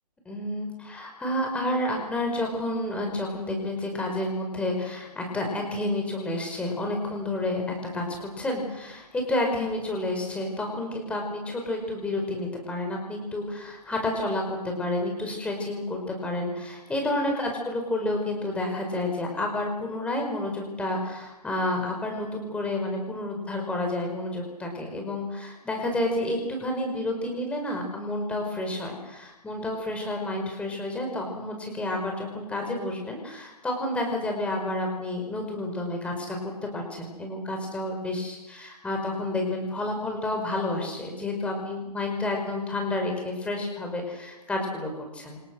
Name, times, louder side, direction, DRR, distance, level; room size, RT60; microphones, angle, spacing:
voice 1, 0.2-45.4, left 1 dB, 5° left, 2 dB, 5.1 m, -30 dB
28.5 x 25.0 x 6.3 m, 1.0 s
hypercardioid pair, 155°, 21 cm